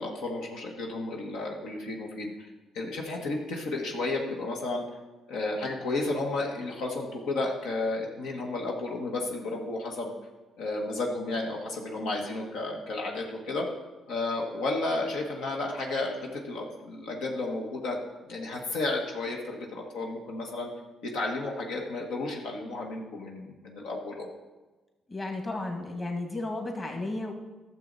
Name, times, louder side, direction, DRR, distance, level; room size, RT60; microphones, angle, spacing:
voice 1, 0.0-2.5 2.7-4.8 5.3-10.1 10.6-13.7 14.1-18.0 18.3-20.7 21.0-24.3, left 2 dB, 90° left, 0 dB, 1.4 m, -32 dB
voice 2, 25.1-27.3, left 2 dB, 30° left, 2 dB, 1.9 m, -33 dB
12.0 x 6.8 x 4.0 m, 1.2 s
cardioid pair, 90°, 0 cm